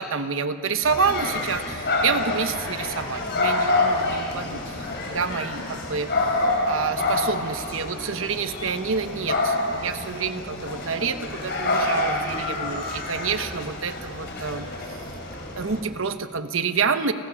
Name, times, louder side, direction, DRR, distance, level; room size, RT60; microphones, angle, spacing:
voice 1, 0.0-15.2 15.5-17.1, right 5 dB, 75° right, 10 dB, 0.9 m, -28 dB
sound 1, 0.8-15.8, left 2 dB, 55° left, 3.5 m, -27 dB
29.5 x 14.5 x 6.3 m, 2.3 s
head